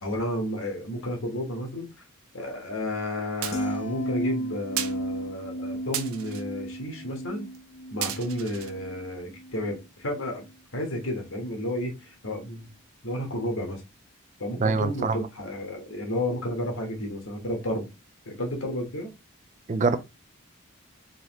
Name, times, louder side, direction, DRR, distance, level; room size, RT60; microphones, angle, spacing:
voice 1, 0.0-1.9 2.3-7.5 7.9-10.4 10.7-12.7 13.0-13.8 14.4-17.9 18.3-19.1, left 1 dB, 70° left, 1.3 m, -32 dB
sound 1, 3.4-3.8 4.8-5.0 5.9-6.4 7.5-7.6 8.0-8.7, right 10 dB, 90° right, 0.6 m, -33 dB
sound 2, 3.5-9.8 10.1-10.5, right 1 dB, 30° left, 0.7 m, -34 dB
voice 2, 14.6-15.2 19.7-20.0, right 4 dB, 35° right, 0.4 m, -24 dB
4.0 x 3.1 x 3.0 m
head